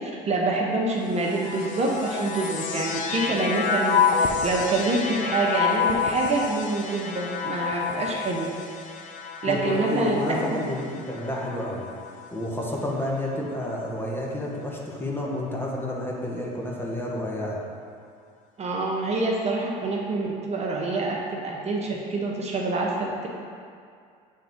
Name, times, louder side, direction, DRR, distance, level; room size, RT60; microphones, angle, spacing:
voice 1, 0.0-8.5 9.4-10.6 18.6-23.3, right 2 dB, 35° right, -1 dB, 0.8 m, -26 dB
sound 1, 1.0-12.5 13.3-14.0, left 6 dB, 45° left, 0.6 m, -29 dB
voice 2, 9.5-17.6, left 1 dB, 10° left, -3 dB, 1.1 m, -30 dB
7.5 x 3.6 x 3.6 m, 2.3 s
supercardioid pair, 85°, 19 cm